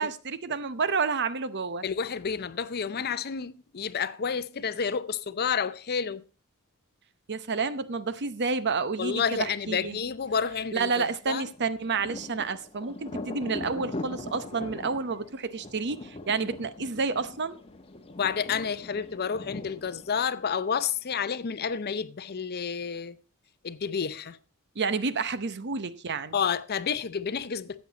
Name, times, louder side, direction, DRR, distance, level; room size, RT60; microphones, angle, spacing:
voice 1, 0.0-1.8 7.3-10.0 10.7-17.6 24.8-26.4, right 4 dB, 50° right, 0.8 m, -30 dB
voice 2, 1.8-6.2 9.0-11.5 18.2-23.2 23.6-24.4 26.3-27.8, left 6 dB, 45° left, 0.6 m, -30 dB
Thunder, 11.5-21.0, left 2 dB, 25° left, 0.9 m, -41 dB
13.0 x 8.3 x 4.0 m
head